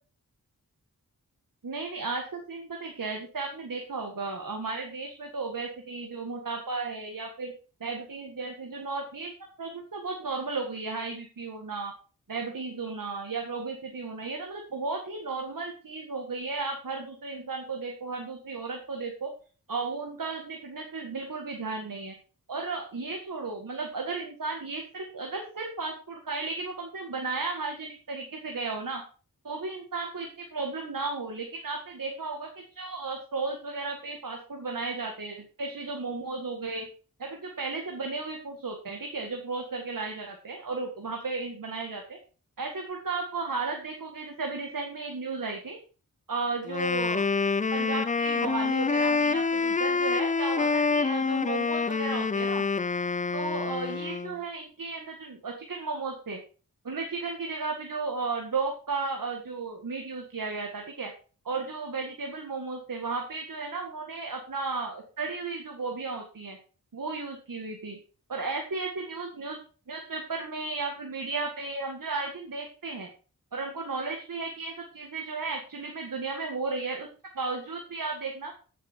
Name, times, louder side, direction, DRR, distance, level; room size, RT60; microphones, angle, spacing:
voice 1, 1.6-7.5 7.8-9.3 9.6-11.9 12.3-19.3 19.7-22.2 22.5-29.0 29.4-36.9 37.2-42.2 42.6-45.8 46.3-47.3 47.7-52.7 53.3-56.4 56.8-61.1 61.5-66.6 66.9-68.0 68.3-69.6 69.9-73.1 73.5-77.1 77.4-78.5, right 3 dB, 65° right, 2 dB, 1.8 m, -34 dB
Wind instrument woodwind instrument, 46.7-54.4, left 4 dB, 20° left, 0.4 m, -27 dB
9.5 x 7.4 x 4.5 m, 0.38 s
cardioid pair, 50°, 36 cm